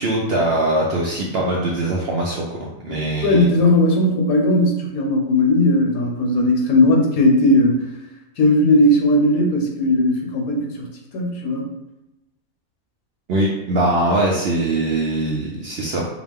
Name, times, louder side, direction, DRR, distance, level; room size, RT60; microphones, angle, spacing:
voice 1, 0.0-2.5 2.8-3.5 13.3-16.1, right 1 dB, 60° right, -3 dB, 0.6 m, -21 dB
voice 2, 3.2-7.8 8.4-11.7, left 1 dB, 75° left, 1 dB, 1.2 m, -17 dB
4.8 x 2.1 x 3.5 m, 0.94 s
omnidirectional pair, 1.6 m